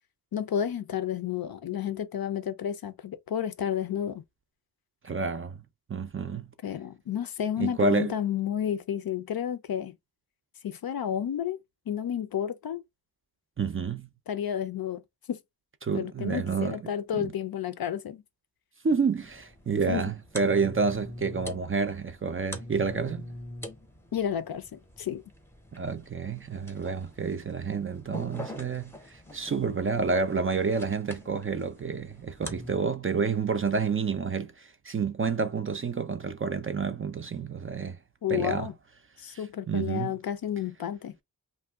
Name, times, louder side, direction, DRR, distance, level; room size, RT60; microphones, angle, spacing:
voice 1, 0.3-4.2 6.6-9.9 10.6-11.6 11.9-12.8 14.3-15.0 15.3-15.4 15.9-18.2 19.9-20.0 24.1-25.2 38.2-38.7 39.2-41.1, left 9 dB, 60° left, 0.5 m, -31 dB
voice 2, 5.0-5.6 5.9-6.5 7.6-8.1 13.6-14.1 15.8-16.8 17.1-17.3 18.8-23.3 25.7-38.0 38.3-38.7 39.3-39.4 39.7-40.2, right 5 dB, 35° right, 0.4 m, -29 dB
sound 1, 19.2-32.8, left 1 dB, 5° left, 0.6 m, -44 dB
2.6 x 2.2 x 3.4 m
wide cardioid pair, 85°, 41 cm